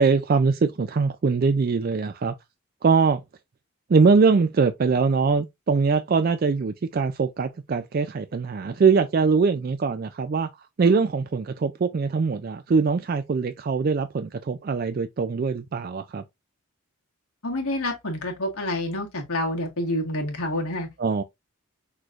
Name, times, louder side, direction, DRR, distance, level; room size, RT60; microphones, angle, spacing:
voice 1, 0.0-2.3 2.8-3.2 3.9-16.2 21.0-21.2, right 4 dB, 40° right, 0.3 m, -22 dB
voice 2, 17.4-20.9, left 1 dB, 85° left, 1.7 m, -28 dB
6.0 x 3.1 x 2.5 m
head